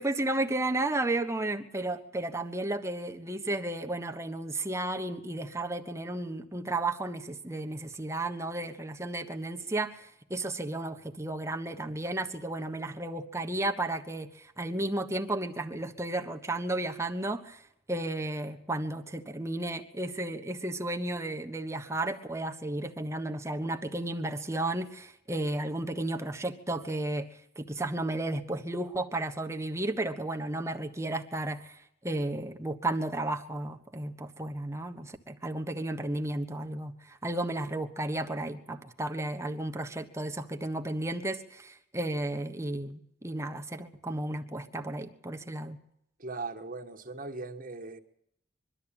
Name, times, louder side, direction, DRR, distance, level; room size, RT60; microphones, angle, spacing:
voice 1, 0.0-17.6 17.9-27.3 27.6-45.8, right 2 dB, 15° right, 1.3 m, -33 dB
voice 2, 46.2-48.0, right 3 dB, 45° right, 1.7 m, -39 dB
23.0 x 13.0 x 8.9 m
head